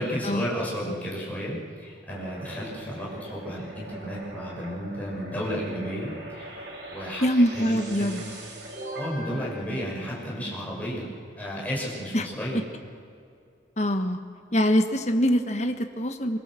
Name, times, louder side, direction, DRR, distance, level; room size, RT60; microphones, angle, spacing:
voice 1, 0.0-7.3 7.5-8.3 8.9-11.1 11.4-12.6, equal, 10° left, -6 dB, 6.4 m, -33 dB
sound 1, 2.1-10.7, right 1 dB, 70° right, 5.7 m, -41 dB
voice 2, 7.2-8.2 12.1-12.3 13.8-14.2 14.5-16.4, equal, 35° left, 6 dB, 1.4 m, -23 dB
24.0 x 23.0 x 7.7 m, 2.4 s
head